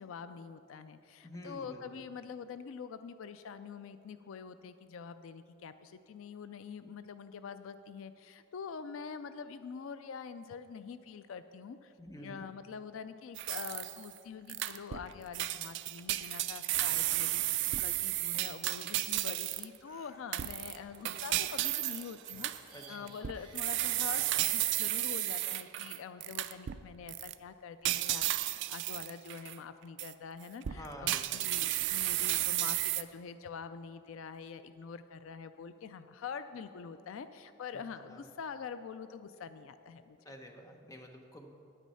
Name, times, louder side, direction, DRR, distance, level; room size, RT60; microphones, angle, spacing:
voice 1, 0.0-40.3, left 6 dB, 70° left, 11 dB, 0.4 m, -45 dB
voice 2, 1.2-2.0 12.0-12.5 22.7-23.1 30.7-31.5 38.1-38.2 40.2-41.5, equal, 15° left, 3 dB, 0.8 m, -49 dB
sound 1, 13.4-14.1 14.5-15.1 15.3-19.8 20.3-26.8 27.1-27.3 27.8-29.6 30.0-30.1 30.6-33.0, right 15 dB, 60° right, 0.3 m, -33 dB
thats no it, 19.2-25.5, right 2 dB, 20° right, 1.4 m, -56 dB
9.3 x 9.2 x 5.5 m, 2.6 s
head